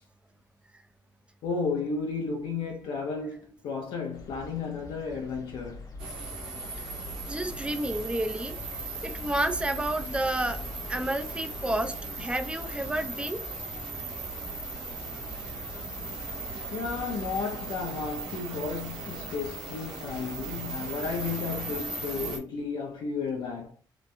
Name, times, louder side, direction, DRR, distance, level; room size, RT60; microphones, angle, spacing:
voice 1, 1.4-5.8 15.7-15.8 16.4-23.7, left 5 dB, 75° left, 0.5 m, -33 dB
sound 1, 4.1-17.3, left 1 dB, 50° left, 0.8 m, -44 dB
sound 2, 6.0-22.4, right 3 dB, 80° right, 1.1 m, -38 dB
voice 2, 7.3-8.6 9.0-10.6 10.9-13.4, right 1 dB, 15° right, 0.4 m, -30 dB
2.9 x 2.2 x 2.5 m
cardioid pair, 90°, 8 cm